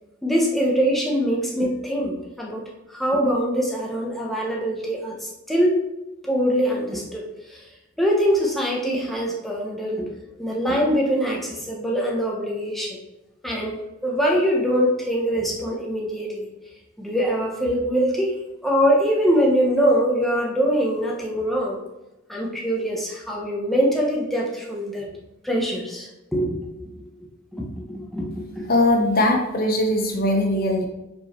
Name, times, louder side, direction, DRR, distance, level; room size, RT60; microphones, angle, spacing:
voice 1, 0.2-2.6 2.9-5.8 6.2-7.6 8.0-10.1 10.4-13.0 13.4-13.7 14.0-16.5 17.0-18.3 18.6-21.8 22.3-25.1 25.4-26.6 26.8-27.1 27.5-28.7, equal, ahead, -3 dB, 1.1 m, -23 dB
voice 2, 28.7-30.8, left 1 dB, 45° left, 2 dB, 0.9 m, -20 dB
5.7 x 4.7 x 4.5 m, 0.95 s
head